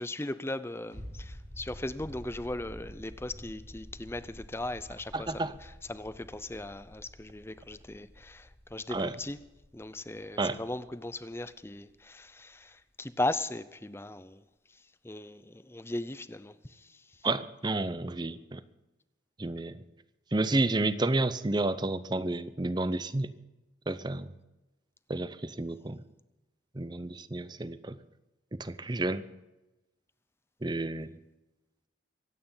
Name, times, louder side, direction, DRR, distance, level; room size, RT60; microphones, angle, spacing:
voice 1, 0.0-9.4 9.7-14.4 14.7-17.3, left 2 dB, 15° left, 0.6 m, -38 dB
sound 1, 0.9-12.2 12.5-12.6, equal, 75° right, 6.7 m, -49 dB
voice 2, 5.1-5.5 8.9-9.1 10.4-10.6 17.2-18.6 19.4-19.8 20.3-23.3 23.9-24.3 25.1-26.0 26.7-28.0 28.5-29.2 30.6-31.1, right 2 dB, 25° right, 0.7 m, -30 dB
24.0 x 9.3 x 5.6 m
head